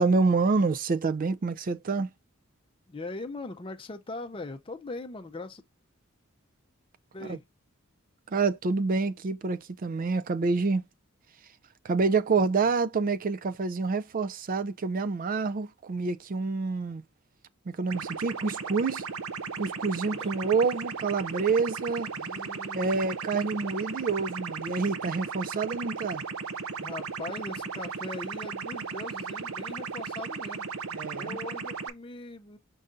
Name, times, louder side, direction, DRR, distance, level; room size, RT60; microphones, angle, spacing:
voice 1, 0.0-2.1 7.3-7.4 8.3-10.8 11.8-17.0 17.7-19.1 19.6-22.1 22.8-26.2 30.9-31.4, right 4 dB, 40° right, 0.4 m, -27 dB
voice 2, 2.9-5.6 7.1-7.4 20.1-20.6 22.1-23.0 26.7-30.7 31.1-32.6, left 2 dB, 25° left, 0.5 m, -40 dB
sound 1, 17.9-31.9, right 5 dB, 80° right, 0.7 m, -36 dB
5.4 x 2.6 x 3.6 m
head